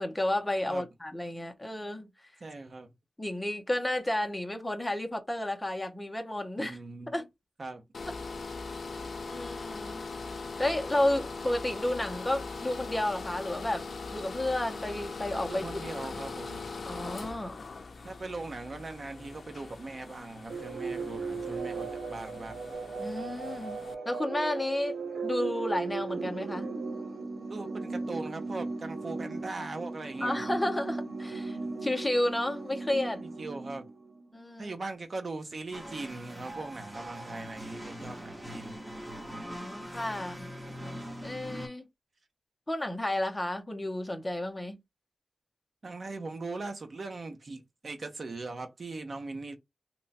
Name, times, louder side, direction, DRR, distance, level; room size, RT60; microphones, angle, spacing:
voice 1, 0.0-2.1 3.2-6.8 7.1-7.3 8.1-8.2 9.3-10.0 10.6-13.9 14.1-15.7 16.1-16.2 16.8-17.6 23.0-23.8 24.1-24.9 25.2-26.7 30.2-33.2 34.3-34.7 39.4-40.5 41.2-41.9 42.7-44.8, left 1 dB, 15° left, 0.7 m, -32 dB
voice 2, 2.4-2.9 6.6-7.1 7.6-7.8 15.5-16.6 18.0-22.7 27.5-30.6 33.4-33.8 34.6-38.7 45.8-49.6, right 3 dB, 50° right, 0.7 m, -40 dB
sound 1, 7.9-23.9, left 4 dB, 60° left, 0.5 m, -41 dB
sound 2, 20.5-34.2, right 4 dB, 85° right, 1.0 m, -37 dB
sound 3, 35.7-41.7, equal, 15° right, 1.0 m, -42 dB
2.9 x 2.2 x 4.1 m
wide cardioid pair, 145°, 0 cm